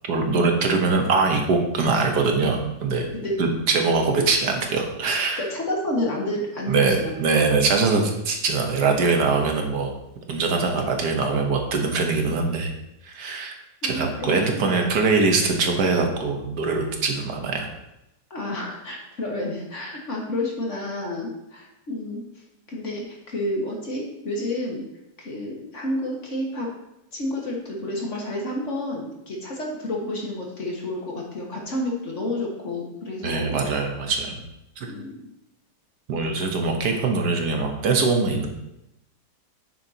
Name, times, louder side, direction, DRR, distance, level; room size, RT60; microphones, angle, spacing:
voice 1, 0.0-3.1 3.4-5.5 6.7-9.9 10.3-12.7 13.0-13.6 13.8-17.7 33.2-34.4 34.8-34.9 36.1-38.5, right 4 dB, 75° right, 3 dB, 1.6 m, -22 dB
voice 2, 5.4-7.1 13.8-14.8 18.3-22.2 22.7-24.8 25.2-26.7 27.1-33.6 34.9-35.2, left 1 dB, 45° left, -1 dB, 1.8 m, -30 dB
9.4 x 7.5 x 2.8 m, 0.88 s
omnidirectional pair, 1.8 m